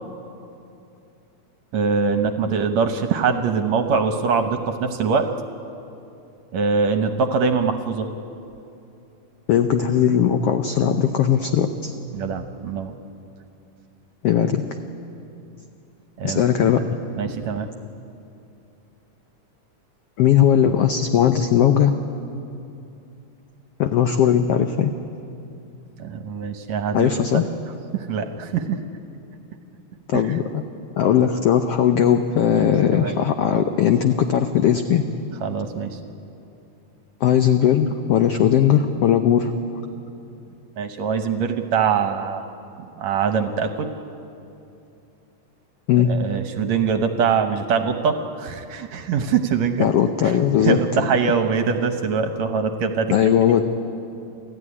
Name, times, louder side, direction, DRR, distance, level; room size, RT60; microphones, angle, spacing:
voice 1, 1.7-5.3 6.5-8.1 12.1-12.9 16.2-16.5 17.2-17.7 26.0-27.4 27.9-28.8 30.1-30.2 32.5-33.1 35.4-36.0 40.8-42.5 43.0-43.9 46.1-49.9 50.2-50.4 50.6-53.3, right 5 dB, 65° right, 7 dB, 2.0 m, -23 dB
voice 2, 9.5-11.9 14.2-14.6 16.2-16.8 20.2-21.9 23.8-24.9 26.9-27.5 30.1-30.6 31.0-35.0 37.2-39.5 45.9-46.1 49.8-50.8 53.1-53.6, left 9 dB, 80° left, 7 dB, 1.4 m, -18 dB
29.0 x 14.0 x 9.8 m, 2.7 s
omnidirectional pair, 3.8 m